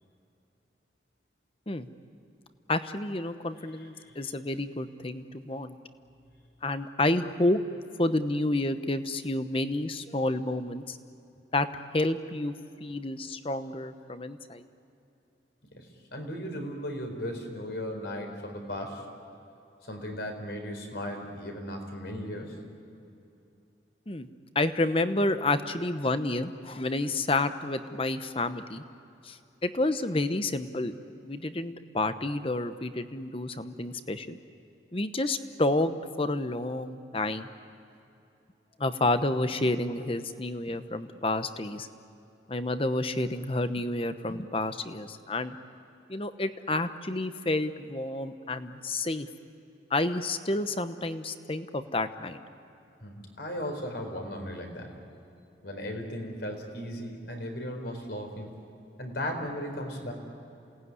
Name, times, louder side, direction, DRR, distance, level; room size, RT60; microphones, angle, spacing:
voice 1, 2.7-5.8 6.6-7.6 8.0-11.0 11.5-11.7 11.9-12.5 12.8-14.6 24.1-24.3 24.5-28.8 29.2-29.4 29.6-30.9 31.2-34.4 34.9-37.5 38.8-41.9 42.5-45.6 46.1-49.3 49.9-52.4, left 2 dB, 30° left, 10 dB, 0.9 m, -29 dB
voice 2, 3.8-4.2 15.7-19.0 19.9-22.6 53.0-55.0 55.6-58.5 59.0-60.1, equal, 65° left, 3 dB, 4.3 m, -36 dB
28.0 x 18.5 x 9.6 m, 2.8 s
head